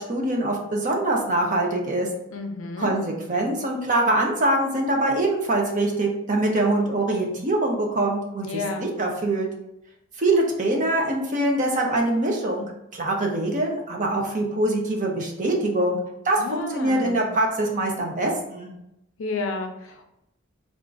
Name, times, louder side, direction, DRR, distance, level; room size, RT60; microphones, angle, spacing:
voice 1, 0.0-2.1 2.8-9.5 10.2-12.6 12.9-16.0 16.2-18.7, right 1 dB, 35° right, 0 dB, 0.7 m, -24 dB
voice 2, 2.3-2.9 8.4-8.9 16.4-17.3 19.2-20.1, left 3 dB, 65° left, 5 dB, 0.5 m, -31 dB
3.5 x 2.5 x 3.8 m, 0.84 s
head